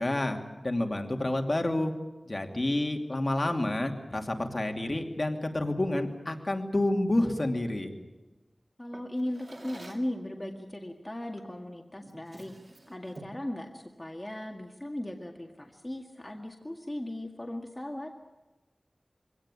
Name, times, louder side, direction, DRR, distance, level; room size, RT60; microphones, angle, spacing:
voice 1, 0.0-1.9 2.2-7.9, left 1 dB, 45° left, 4 dB, 2.8 m, -29 dB
voice 2, 8.8-12.6 12.9-18.1, left 1 dB, 25° left, 3 dB, 1.9 m, -37 dB
Drawer open or close, 8.9-10.2 11.4-11.6 12.0-13.5, right 2 dB, 55° right, 2.5 m, -49 dB
23.5 x 18.0 x 9.9 m, 1.2 s
wide cardioid pair, 50°, 0 cm